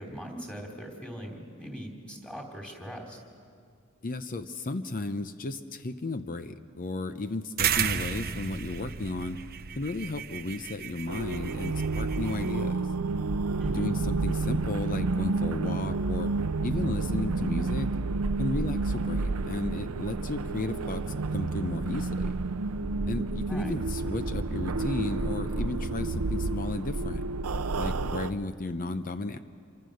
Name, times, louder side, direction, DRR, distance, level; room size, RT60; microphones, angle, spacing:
voice 1, 0.0-3.2 13.6-13.9 23.5-23.8, equal, 5° left, 1 dB, 3.2 m, -40 dB
voice 2, 4.0-9.4 9.8-12.9 13.7-16.3 16.6-17.9 18.4-21.0 21.3-22.4 23.1-27.2 27.8-29.4, left 2 dB, 40° left, 10 dB, 0.7 m, -34 dB
sound 1, 7.6-12.5, right 8 dB, 45° right, 0.8 m, -33 dB
sound 2, 11.1-28.3, right 3 dB, 80° right, 0.7 m, -30 dB
27.0 x 24.0 x 6.5 m, 2.2 s
head